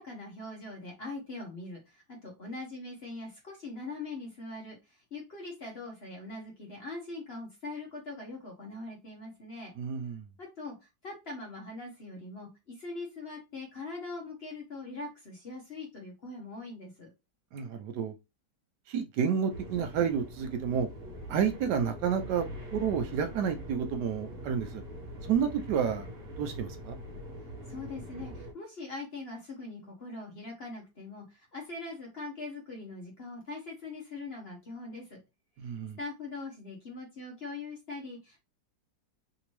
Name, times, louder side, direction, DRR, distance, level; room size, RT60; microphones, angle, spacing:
voice 1, 0.0-9.7 10.4-10.7 11.0-17.1 27.7-35.2 36.0-38.4, left 3 dB, 45° left, 0.9 m, -42 dB
voice 2, 9.8-10.2 17.5-18.1 18.9-20.9 21.3-22.4 22.7-24.8 25.2-26.1 26.4-27.0 35.6-36.0, right 7 dB, 75° right, 1.1 m, -30 dB
sound 1, 19.5-28.5, right 1 dB, 55° right, 1.4 m, -43 dB
3.4 x 2.9 x 3.0 m
omnidirectional pair, 1.9 m